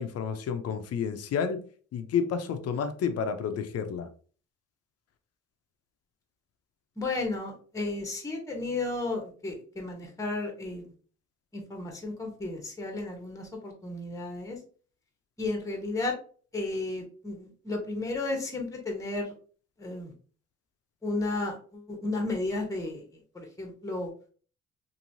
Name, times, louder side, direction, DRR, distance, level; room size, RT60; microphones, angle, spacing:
voice 1, 0.0-1.7 1.9-4.1, left 6 dB, 55° left, 0.5 m, -30 dB
voice 2, 7.0-10.8 11.5-14.6 15.4-16.1 16.5-19.3 19.8-20.1 21.0-23.0 23.3-24.1, left 2 dB, 10° left, 0.8 m, -33 dB
3.0 x 2.6 x 2.6 m
cardioid pair, 90°, 30 cm